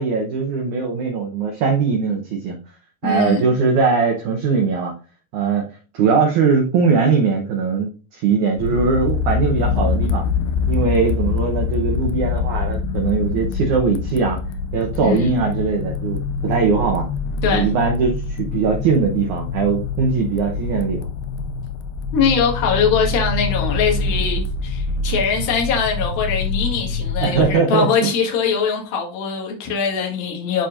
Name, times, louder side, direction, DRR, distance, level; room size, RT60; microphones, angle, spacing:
voice 1, 0.0-2.6 3.0-4.9 5.3-5.7 5.9-10.3 10.7-14.4 14.7-17.1 17.5-21.1 27.2-28.1, right 5 dB, 85° right, 1.7 m, -20 dB
voice 2, 3.0-3.5 15.0-15.3 17.4-17.7 22.1-30.7, left 6 dB, 65° left, 3.3 m, -21 dB
sound 1, 8.6-27.5, left 4 dB, 80° left, 2.6 m, -25 dB
12.0 x 4.3 x 2.5 m
omnidirectional pair, 4.9 m